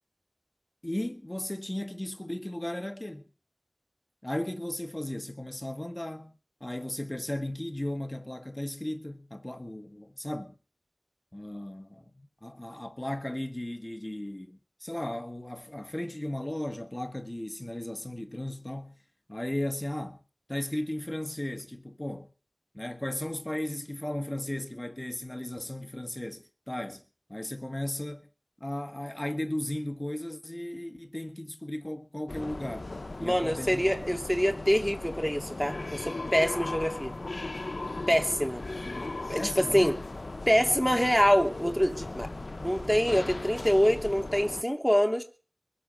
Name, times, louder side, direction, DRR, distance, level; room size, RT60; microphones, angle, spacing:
voice 1, 0.8-3.3 4.2-10.6 11.3-19.0 19.3-20.2 20.5-22.3 22.7-27.0 27.3-28.3 28.6-32.9 33.2-34.0 39.4-40.0, left 1 dB, 25° left, 1.7 m, -36 dB
sound 1, 32.3-44.6, left 2 dB, 80° left, 0.7 m, -37 dB
voice 2, 33.2-37.1 38.1-38.6 39.3-39.9 40.5-42.3 42.6-45.2, equal, ahead, 2.6 m, -25 dB
22.5 x 8.2 x 6.4 m
wide cardioid pair, 45°, 0 cm